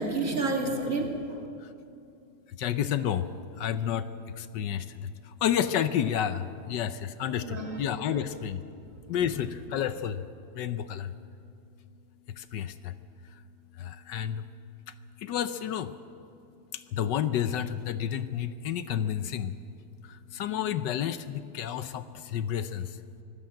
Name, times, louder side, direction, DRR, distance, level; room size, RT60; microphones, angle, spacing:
voice 1, 0.0-1.4 7.2-8.4, right 2 dB, 45° right, 2 dB, 2.6 m, -31 dB
voice 2, 2.6-3.2 3.6-4.0 4.5-4.8 5.4-6.4 6.7-6.9 7.2-8.6 9.1-10.2 10.6-11.1 12.5-12.7 14.1-14.4 15.3-15.9 17.0-19.5 20.4-22.0 22.3-22.8, left 9 dB, 75° left, 12 dB, 1.3 m, -29 dB
24.0 x 15.0 x 7.8 m, 2.6 s
omnidirectional pair, 2.0 m